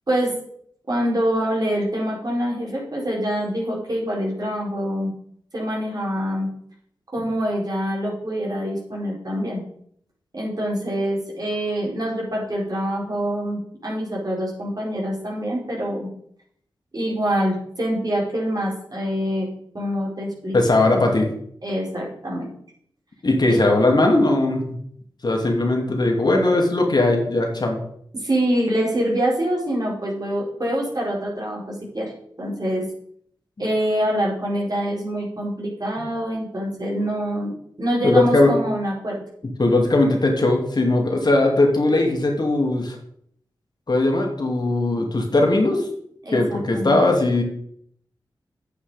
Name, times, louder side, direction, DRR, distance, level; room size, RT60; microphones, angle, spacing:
voice 1, 0.9-5.1 5.5-6.5 7.1-9.6 10.3-16.1 16.9-19.5 19.7-20.6 21.6-22.5 23.5-23.6 28.1-32.1 32.4-32.8 33.6-37.5 37.8-39.2 46.2-47.0, equal, 50° right, -3 dB, 5.0 m, -25 dB
voice 2, 20.5-21.3 23.2-24.6 25.2-27.8 33.6-33.7 36.0-36.1 38.0-38.5 39.6-43.0 43.9-45.9 46.3-47.4, left 2 dB, 55° left, 1 dB, 2.5 m, -19 dB
8.7 x 8.5 x 5.1 m, 0.66 s
cardioid pair, 45°, 9 cm